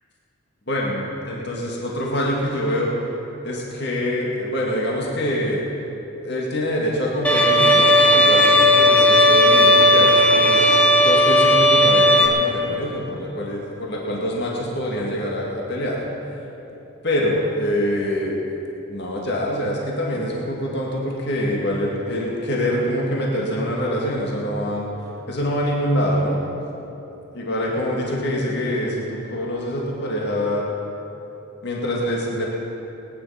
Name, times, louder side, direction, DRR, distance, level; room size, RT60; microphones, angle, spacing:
voice 1, 0.7-2.9 3.4-5.6 6.2-10.6 11.0-16.0 17.0-18.4 18.9-24.9 25.3-26.4 27.3-30.6 31.6-32.5, equal, 50° left, -3 dB, 2.2 m, -25 dB
Bowed string instrument, 7.2-12.3, left 1 dB, 5° left, 1.2 m, -14 dB
19.5 x 10.5 x 5.8 m, 2.9 s
head